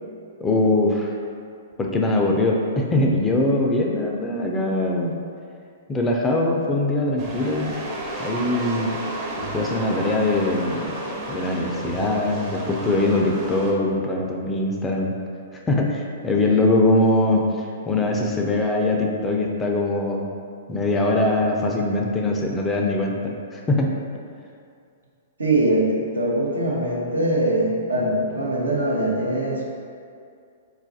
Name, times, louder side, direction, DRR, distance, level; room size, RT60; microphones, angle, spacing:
voice 1, 0.4-1.1 1.8-5.1 5.9-7.8 8.2-9.0 9.5-11.0 11.3-15.2 15.7-20.3 20.7-23.9, left 2 dB, 15° left, 0 dB, 0.4 m, -22 dB
sound 1, 7.2-13.7, right 1 dB, 30° right, 0.6 m, -32 dB
voice 2, 25.4-29.6, right 1 dB, 90° right, -4 dB, 0.6 m, -22 dB
3.9 x 2.4 x 2.6 m, 2.3 s
hypercardioid pair, 120°, 0 cm